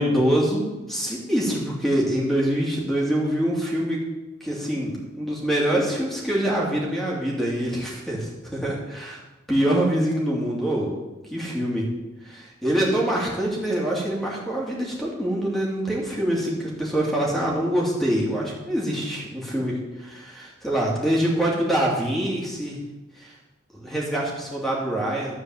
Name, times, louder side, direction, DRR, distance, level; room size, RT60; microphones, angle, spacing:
voice 1, 0.0-4.0 4.4-9.2 9.5-10.9 11.3-11.9 12.2-22.8 23.2-23.3 23.7-25.3, right 1 dB, ahead, -4 dB, 2.6 m, -25 dB
13.5 x 4.7 x 7.7 m, 1.1 s
head